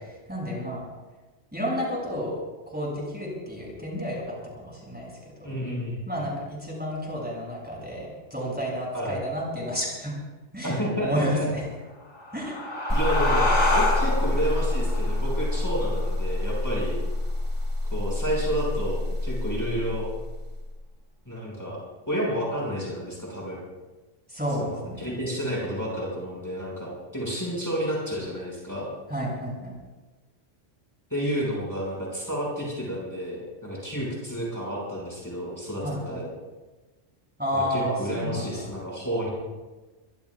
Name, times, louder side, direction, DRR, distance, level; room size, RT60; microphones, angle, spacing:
voice 1, 0.3-0.8 1.5-2.4 2.7-5.1 6.1-10.1 10.5-11.6 12.3-12.5 24.3-25.1 29.1-29.7 35.8-36.2 37.4-38.7, equal, 10° right, -4 dB, 7.1 m, -31 dB
voice 2, 5.4-6.0 8.9-9.2 10.6-11.5 12.9-16.9 17.9-20.1 21.3-21.8 22.1-23.6 24.6-28.9 31.1-36.3 37.5-39.3, equal, 15° left, -5 dB, 6.3 m, -30 dB
sound 1, 12.0-17.2, left 2 dB, 60° left, 5.3 m, -28 dB
sound 2, 12.9-20.7, left 1 dB, 35° left, 3.0 m, -27 dB
25.0 x 23.5 x 2.5 m, 1.2 s
omnidirectional pair, 1.1 m